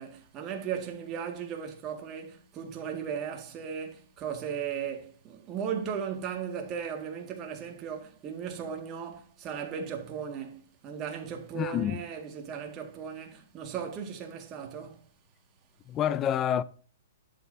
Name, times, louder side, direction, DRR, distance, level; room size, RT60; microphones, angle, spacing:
voice 1, 0.0-15.0, right 7 dB, 30° right, 1.8 m, -36 dB
voice 2, 11.5-12.0 15.9-16.6, left 10 dB, 25° left, 0.5 m, -27 dB
11.0 x 7.7 x 2.7 m
hypercardioid pair, 140°, 0 cm